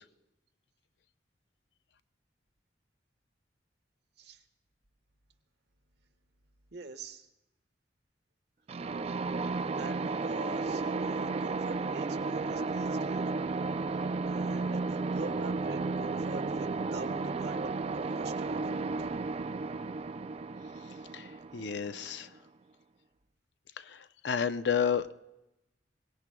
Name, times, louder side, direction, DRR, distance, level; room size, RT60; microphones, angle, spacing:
voice 1, 6.7-7.3 9.7-13.2 14.2-19.1, right 3 dB, 65° right, 5 dB, 1.3 m, -45 dB
sound 1, 8.7-22.4, right 3 dB, 35° right, 0.4 m, -33 dB
voice 2, 21.1-22.3 23.8-25.1, left 7 dB, 70° left, 12 dB, 0.6 m, -31 dB
23.5 x 18.0 x 2.2 m, 0.92 s
head